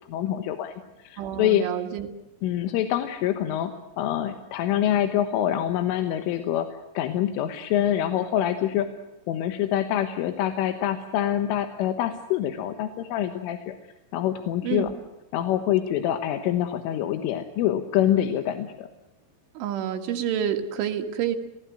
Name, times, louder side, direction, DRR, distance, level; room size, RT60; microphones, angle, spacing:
voice 1, 0.1-1.7 2.4-6.7 7.0-8.9 9.3-13.8 14.1-14.9 15.3-18.9, left 11 dB, 90° left, 8 dB, 3.8 m, -25 dB
voice 2, 1.2-2.1 14.6-14.9 19.6-21.4, right 9 dB, 80° right, 5 dB, 4.3 m, -28 dB
29.0 x 18.0 x 7.7 m, 0.99 s
omnidirectional pair, 5.5 m